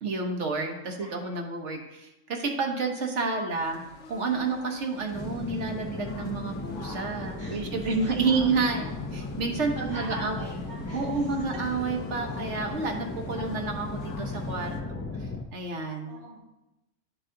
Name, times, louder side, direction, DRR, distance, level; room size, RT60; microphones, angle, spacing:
voice 1, 0.0-3.8 4.1-10.4 10.9-16.2, right 4 dB, 70° right, 2 dB, 1.4 m, -30 dB
voice 2, 1.0-1.4 7.4-7.6 8.0-8.8 9.7-11.3 16.1-16.4, right 1 dB, 45° right, -7 dB, 2.5 m, -44 dB
sound 1, 3.5-14.8, left 5 dB, 70° left, 1.1 m, -48 dB
sound 2, 5.1-15.4, left 2 dB, 20° left, 0.3 m, -36 dB
11.0 x 4.8 x 3.8 m, 0.96 s
omnidirectional pair, 1.3 m